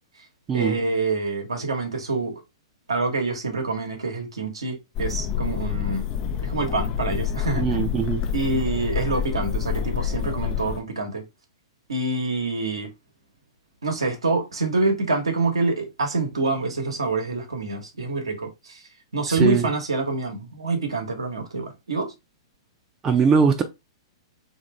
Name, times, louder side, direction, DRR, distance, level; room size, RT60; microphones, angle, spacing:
voice 1, 0.5-2.4 2.9-6.1 6.4-7.9 8.3-11.2 11.9-12.9 13.8-18.8 19.1-22.1, right 3 dB, 85° right, 1.0 m, -26 dB
sound 1, 4.9-10.8, left 8 dB, 35° left, 0.4 m, -27 dB
voice 2, 7.6-8.2 19.4-19.7 23.0-23.6, right 6 dB, 20° right, 0.5 m, -20 dB
3.3 x 2.6 x 3.1 m
hypercardioid pair, 115°, 3 cm